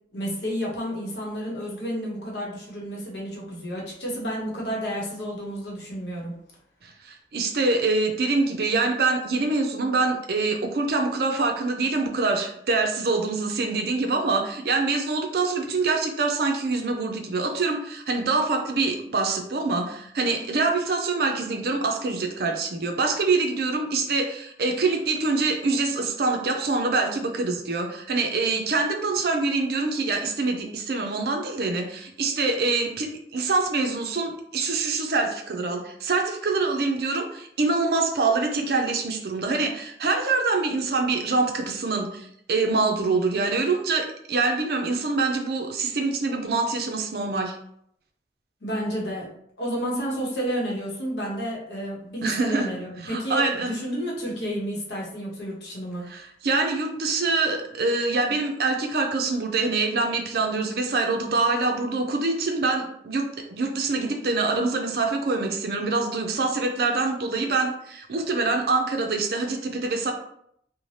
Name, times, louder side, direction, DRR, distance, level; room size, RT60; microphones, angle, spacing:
voice 1, 0.1-6.3 48.6-49.3 49.6-56.1, equal, 80° left, -3 dB, 0.8 m, -31 dB
voice 2, 6.8-47.6 52.2-52.7 53.0-53.8 56.1-70.1, right 3 dB, 60° right, 3 dB, 0.4 m, -25 dB
2.6 x 2.1 x 3.1 m, 0.70 s
head